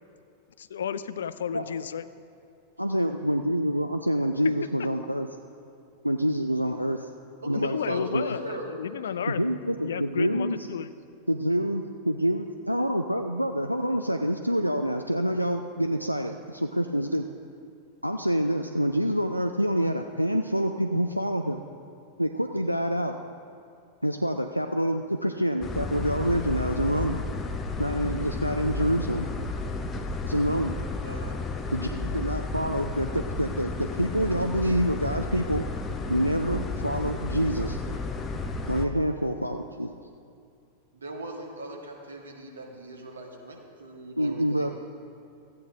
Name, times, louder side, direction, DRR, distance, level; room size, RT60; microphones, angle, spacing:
voice 1, 0.6-2.1 7.5-9.4 9.8-10.9, left 8 dB, 65° left, 14 dB, 0.3 m, -32 dB
voice 2, 2.8-5.3 6.0-7.1 7.5-8.2 9.3-10.6 11.3-17.2 18.0-21.6 22.2-23.2 24.0-27.2 27.8-29.3 30.2-30.8 31.7-35.6 36.1-37.8 38.7-39.9 44.2-44.7, equal, 90° right, 5 dB, 0.3 m, -27 dB
voice 3, 7.4-8.7 31.0-31.4 40.9-44.7, right 2 dB, 70° right, 0 dB, 1.5 m, -40 dB
sound 1, 25.6-38.9, left 3 dB, 20° left, 0.6 m, -32 dB
14.5 x 8.6 x 3.6 m, 2.5 s
figure-of-eight pair, 90°, 0 cm